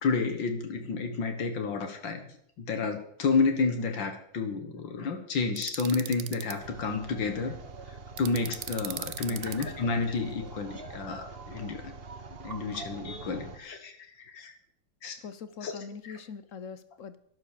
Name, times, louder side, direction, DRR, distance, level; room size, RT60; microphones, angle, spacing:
voice 1, 0.0-2.2 2.6-7.5 8.2-11.9 12.4-13.9 14.2-14.6 15.0-15.2 15.6-15.7 16.1-16.2, left 4 dB, 80° left, 5 dB, 2.3 m, -30 dB
sound 1, 5.6-6.5 8.2-9.7, right 12 dB, 65° right, 1.0 m, -38 dB
sound 2, 6.6-13.6, right 4 dB, 35° right, 1.2 m, -44 dB
voice 2, 9.2-9.5 13.3-13.5 15.2-17.2, left 6 dB, 55° left, 13 dB, 1.0 m, -43 dB
12.0 x 11.5 x 6.7 m, 0.68 s
omnidirectional pair, 2.0 m